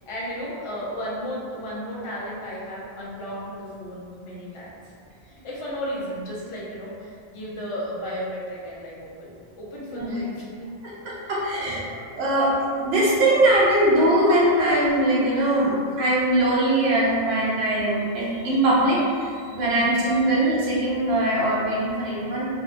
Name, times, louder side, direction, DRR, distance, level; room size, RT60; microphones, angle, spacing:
voice 1, 0.1-4.8 5.2-10.7 19.5-19.9, equal, 40° left, -6 dB, 0.5 m, -34 dB
voice 2, 10.8-22.5, right 1 dB, 75° right, -7 dB, 0.9 m, -21 dB
2.7 x 2.1 x 2.5 m, 2.2 s
omnidirectional pair, 1.1 m